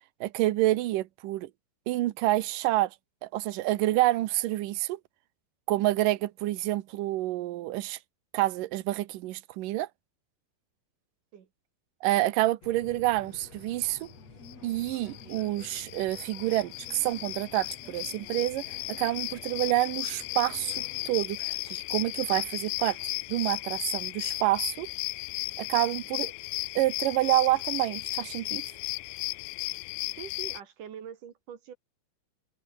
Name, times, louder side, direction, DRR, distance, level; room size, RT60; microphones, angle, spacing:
voice 1, 0.2-1.5 1.9-3.0 3.2-5.0 5.7-8.0 8.3-9.9 12.0-14.1 14.6-20.8 21.1-23.0 23.3-24.9 25.6-26.3 26.8-28.6, right 16 dB, 75° right, 2.0 m, -28 dB
sound 1, 12.6-21.2, left 4 dB, 35° left, 6.7 m, -50 dB
sound 2, 14.5-14.6 14.8-30.6, left 21 dB, 80° left, 2.7 m, -35 dB
voice 2, 30.2-31.7, right 8 dB, 55° right, 3.1 m, -43 dB
omnidirectional pair, 5.0 m